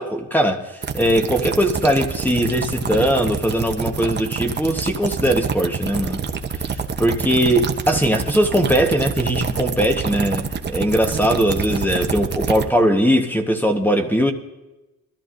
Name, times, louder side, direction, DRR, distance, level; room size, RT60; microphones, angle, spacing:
voice 1, 0.0-6.2 6.6-14.3, equal, 5° left, 1.1 m, -20 dB
sound 1, 0.8-12.6, right 6 dB, 30° right, 0.9 m, -26 dB
21.5 x 13.5 x 2.6 m
cardioid pair, 110°, 34 cm